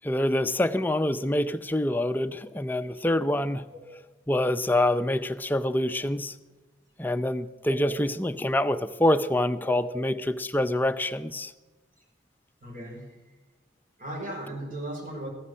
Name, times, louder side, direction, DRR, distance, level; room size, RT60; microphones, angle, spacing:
voice 1, 0.0-3.7 4.3-6.3 7.0-11.5, left 1 dB, 10° left, 10 dB, 0.5 m, -26 dB
voice 2, 7.7-8.1 9.7-10.1 12.6-13.2 14.0-15.3, right 1 dB, 45° right, -1 dB, 5.6 m, -37 dB
14.0 x 9.9 x 6.3 m, 1.2 s
head